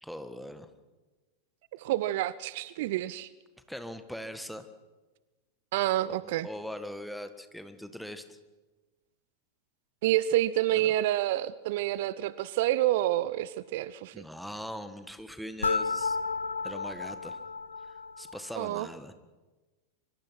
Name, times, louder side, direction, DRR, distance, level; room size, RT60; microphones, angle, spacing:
voice 1, 0.0-0.7 3.7-4.7 6.1-8.4 10.7-10.9 14.1-16.2 16.6-17.4 17.8-19.1, equal, ahead, 9 dB, 1.7 m, -41 dB
voice 2, 1.7-3.3 5.7-6.5 10.0-14.2 18.6-18.9, right 14 dB, 50° right, 18 dB, 0.6 m, -28 dB
sound 1, 15.6-18.5, left 4 dB, 75° left, 0.6 m, -32 dB
24.5 x 24.0 x 5.9 m, 1.2 s
figure-of-eight pair, 90°, 0 cm